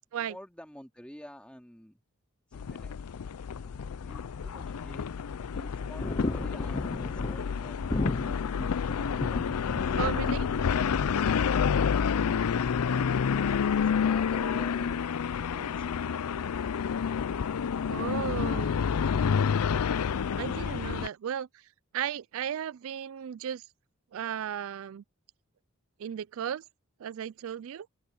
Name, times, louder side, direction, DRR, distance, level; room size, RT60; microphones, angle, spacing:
voice 1, 0.1-2.0 2.5-3.1 4.0-5.1 5.5-8.0 13.9-15.0 15.5-16.2, equal, 5° left, 2.5 m, -50 dB
sound 1, 2.5-21.1, left 7 dB, 85° left, 0.5 m, -29 dB
sound 2, 3.6-14.8, left 2 dB, 25° left, 0.6 m, -38 dB
voice 2, 10.0-10.5 17.9-18.9 20.4-21.5 21.9-23.6 24.1-25.0 26.0-26.6 27.0-27.9, right 9 dB, 65° right, 0.3 m, -35 dB
open air
head